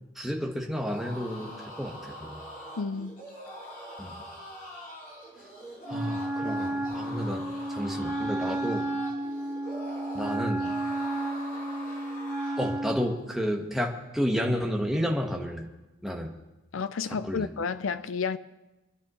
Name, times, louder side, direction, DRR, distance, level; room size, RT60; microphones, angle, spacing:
voice 1, 0.1-1.5 1.8-2.4 4.0-4.2 5.9-7.4 7.7-8.9 10.1-10.7 12.6-15.7 16.0-16.3 17.2-17.5, equal, ahead, 1.3 m, -31 dB
sound 1, 0.7-12.8, equal, 40° left, 5.7 m, -43 dB
voice 2, 2.8-3.2 16.7-18.4, left 5 dB, 80° left, 0.5 m, -31 dB
Wind instrument woodwind instrument, 5.9-13.1, right 1 dB, 30° right, 2.4 m, -32 dB
25.5 x 10.5 x 3.1 m
head